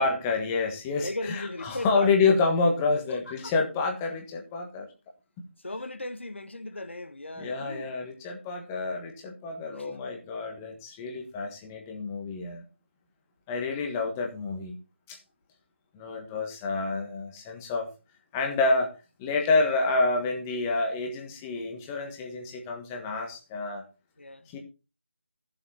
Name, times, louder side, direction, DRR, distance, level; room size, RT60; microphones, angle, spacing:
voice 1, 0.0-4.9 5.4-5.5 7.4-12.6 13.5-14.8 15.1-15.2 15.9-17.9 18.3-23.8 24.5-24.6, left 3 dB, 10° left, 1.4 m, -28 dB
voice 2, 1.0-2.3 3.1-3.5 5.6-7.9 9.7-10.0 24.2-24.5, left 2 dB, 90° left, 1.5 m, -37 dB
13.5 x 7.6 x 4.2 m
figure-of-eight pair, 165°, 6 cm